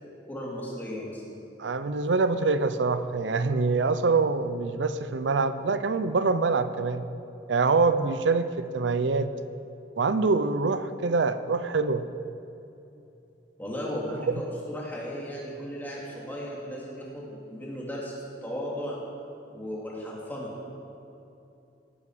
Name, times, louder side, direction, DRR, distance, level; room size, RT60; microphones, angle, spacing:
voice 1, 0.3-1.2 13.6-18.2 18.4-19.0 19.5-20.5, equal, 10° left, -5 dB, 2.9 m, -35 dB
voice 2, 1.6-7.0 7.5-9.3 10.0-12.1 14.3-14.4, right 4 dB, 90° right, 12 dB, 0.6 m, -25 dB
17.5 x 10.0 x 5.1 m, 2.8 s
head